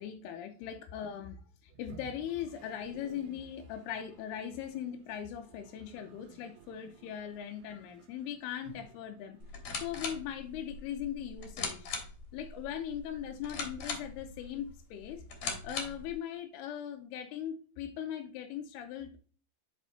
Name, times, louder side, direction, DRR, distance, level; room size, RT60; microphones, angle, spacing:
voice 1, 0.0-9.4 9.7-11.9 12.3-15.2 15.6-19.2, left 9 dB, 90° left, 4 dB, 2.7 m, -40 dB
Toilet flush, 1.7-10.8, right 6 dB, 80° right, 1.8 m, -57 dB
sound 1, 9.4-16.1, left 4 dB, 60° left, 2.1 m, -41 dB
6.2 x 4.5 x 4.0 m, 0.40 s
omnidirectional pair, 4.6 m